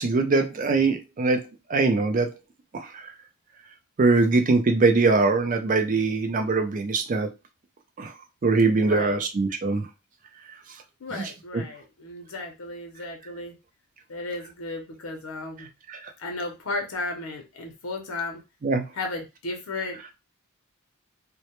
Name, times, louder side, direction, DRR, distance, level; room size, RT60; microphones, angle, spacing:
voice 1, 0.0-1.4 1.7-2.3 2.7-2.9 4.0-7.3 8.0-8.1 8.4-9.9 11.5-11.6 15.9-16.1 18.6-18.8, right 3 dB, 35° right, 5 dB, 0.4 m, -22 dB
voice 2, 8.8-9.2 11.0-13.6 14.1-15.7 16.2-18.4 18.9-20.0, left 2 dB, 80° left, 2 dB, 0.6 m, -34 dB
2.1 x 2.1 x 2.9 m, 0.26 s
head